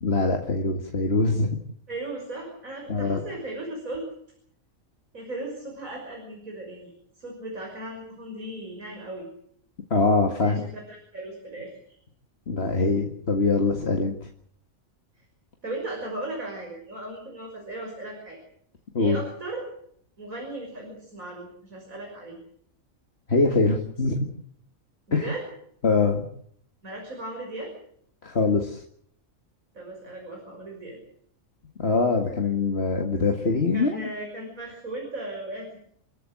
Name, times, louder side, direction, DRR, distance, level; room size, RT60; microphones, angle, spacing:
voice 1, 0.0-1.5 2.9-3.2 9.9-10.6 12.5-14.1 18.9-19.2 23.3-24.2 25.1-25.3 25.8-26.3 28.2-28.8 31.8-34.0, left 3 dB, 50° left, 3 dB, 2.2 m, -23 dB
voice 2, 1.9-4.1 5.1-9.3 10.4-12.0 15.2-15.3 15.6-18.4 19.0-19.6 20.2-22.4 25.1-25.5 26.8-27.7 29.7-31.0 33.7-35.8, right 1 dB, 80° right, 1 dB, 6.5 m, -37 dB
28.5 x 15.0 x 7.8 m, 0.67 s
omnidirectional pair, 1.4 m